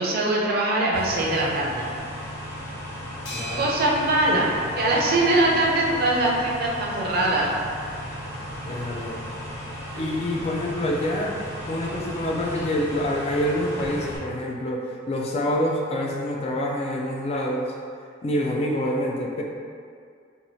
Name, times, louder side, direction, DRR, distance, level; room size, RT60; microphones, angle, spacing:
voice 1, 0.0-1.9 3.6-7.6 9.9-10.1, right 2 dB, 50° right, -3 dB, 0.5 m, -22 dB
sound 1, 0.9-14.2, equal, 85° left, 1.4 m, -36 dB
sound 2, 3.3-5.7, right 2 dB, 60° left, 0.6 m, -39 dB
voice 2, 3.3-3.7 8.7-9.2 10.0-17.7 18.2-19.4, left 1 dB, 30° left, -1 dB, 0.3 m, -27 dB
2.7 x 2.3 x 3.0 m, 2.2 s
head